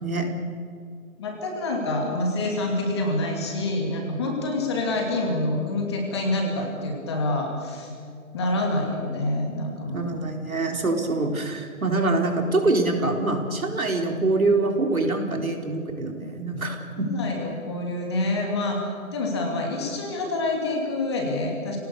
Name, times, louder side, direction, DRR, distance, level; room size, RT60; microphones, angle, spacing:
voice 1, 1.2-7.9 8.3-10.1 16.9-21.8, left 2 dB, 20° left, 0 dB, 2.8 m, -27 dB
voice 2, 9.9-17.1, right 2 dB, 75° right, 3 dB, 4.4 m, -25 dB
28.5 x 19.0 x 6.9 m, 2.3 s
figure-of-eight pair, 165°, 43 cm